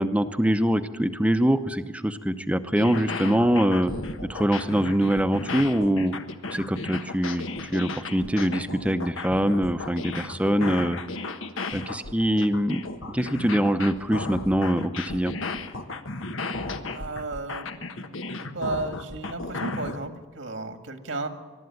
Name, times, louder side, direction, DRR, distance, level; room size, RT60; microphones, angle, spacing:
voice 1, 0.0-3.9 4.3-6.1 6.5-7.5 7.7-11.0 11.7-12.8 13.1-15.3, equal, 5° right, 9 dB, 0.7 m, -24 dB
sound 1, 2.7-20.0, left 3 dB, 85° left, 1.3 m, -34 dB
voice 2, 16.9-17.7 18.4-21.3, right 2 dB, 75° right, 6 dB, 1.9 m, -33 dB
22.0 x 13.0 x 9.5 m, 1.4 s
head